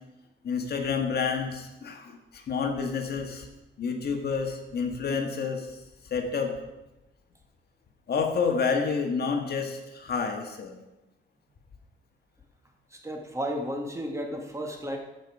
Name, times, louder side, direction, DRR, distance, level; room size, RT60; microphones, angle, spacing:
voice 1, 0.4-3.5 3.8-5.8 6.1-6.5 8.1-10.7, left 5 dB, 55° left, 4 dB, 1.7 m, -29 dB
voice 2, 13.0-15.0, equal, 15° right, 2 dB, 1.6 m, -33 dB
15.0 x 5.6 x 4.8 m, 1.0 s
cardioid pair, 90°, 20 cm